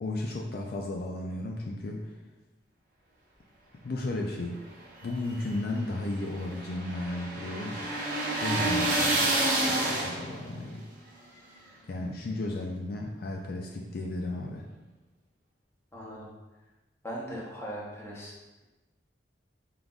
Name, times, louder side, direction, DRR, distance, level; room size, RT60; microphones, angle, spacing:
voice 1, 0.0-2.1 3.8-4.6 5.0-7.9 8.4-9.3 9.6-10.8 11.6-14.7, left 2 dB, 55° left, 0 dB, 0.4 m, -34 dB
sound 1, 5.0-10.5, right 2 dB, 50° right, 0.9 m, -29 dB
voice 2, 15.9-16.3 17.0-18.4, equal, 15° left, -4 dB, 0.8 m, -39 dB
4.9 x 3.8 x 2.3 m, 1.1 s
head